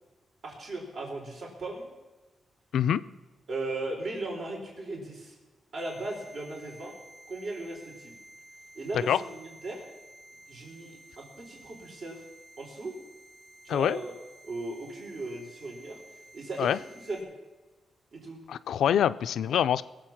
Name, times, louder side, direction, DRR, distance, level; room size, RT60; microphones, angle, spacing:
voice 1, 0.4-1.9 3.5-5.4 5.7-7.0 7.3-8.2 8.7-9.8 10.5-12.2 12.6-13.0 13.6-14.1 14.4-16.0 16.3-17.3 18.1-18.4, right 2 dB, 60° right, -2 dB, 4.1 m, -37 dB
sound 1, 5.8-17.2, right 1 dB, 40° right, 3.1 m, -53 dB
voice 2, 18.5-19.8, left 9 dB, 85° left, 14 dB, 0.4 m, -25 dB
21.0 x 7.7 x 5.9 m, 1.2 s
cardioid pair, 105°, 0 cm